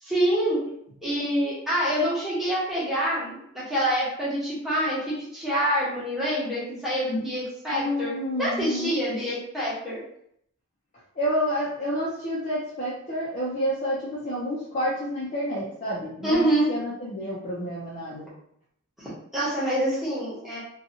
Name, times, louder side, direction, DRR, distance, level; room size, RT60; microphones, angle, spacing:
voice 1, 0.0-0.6 1.0-8.1 8.4-10.0 16.2-16.7 19.0-20.6, right 1 dB, ahead, -9 dB, 1.0 m, -26 dB
voice 2, 7.7-9.0 11.2-18.3, equal, 35° left, -7 dB, 0.5 m, -29 dB
2.7 x 2.3 x 2.7 m, 0.70 s
head